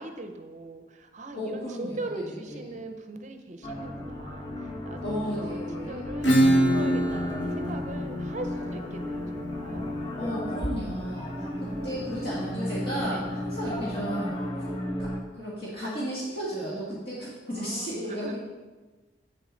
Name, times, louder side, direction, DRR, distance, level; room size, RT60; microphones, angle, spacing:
voice 1, 0.0-9.8 11.3-12.1 13.0-13.3 17.5-18.4, right 2 dB, 40° right, 6 dB, 0.6 m, -41 dB
voice 2, 1.3-2.8 5.0-6.1 10.2-11.3 11.6-14.7 15.0-18.4, equal, 60° left, -7 dB, 1.7 m, -34 dB
sound 1, 3.6-15.2, left 1 dB, 25° left, 0.9 m, -34 dB
Acoustic guitar / Strum, 6.2-11.6, right 1 dB, 85° left, 1.1 m, -26 dB
8.1 x 6.6 x 3.9 m, 1.3 s
head